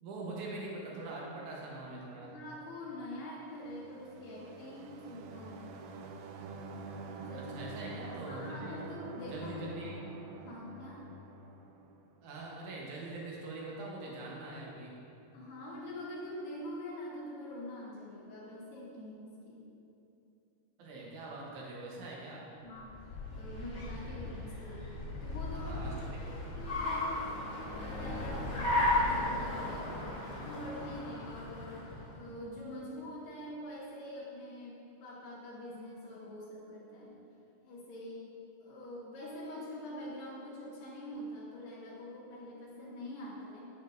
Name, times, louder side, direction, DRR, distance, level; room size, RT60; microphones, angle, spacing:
voice 1, 0.0-2.3 7.3-8.8 9.3-10.0 12.2-14.9 20.8-22.5 25.5-26.6, right 2 dB, 65° right, -4 dB, 2.1 m, -43 dB
voice 2, 2.2-5.8 7.3-7.7 8.1-10.0 10.4-11.0 15.3-19.6 22.6-25.0 25.2-27.3 27.8-31.8 32.1-37.1 37.6-38.3 38.6-43.6, left 1 dB, 65° left, -12 dB, 2.8 m, -45 dB
sound 1, 3.5-12.2, right 3 dB, 85° right, 2.0 m, -46 dB
Car, 22.8-32.3, left 1 dB, 50° left, 0.8 m, -35 dB
9.0 x 7.3 x 2.6 m, 2.8 s
omnidirectional pair, 4.5 m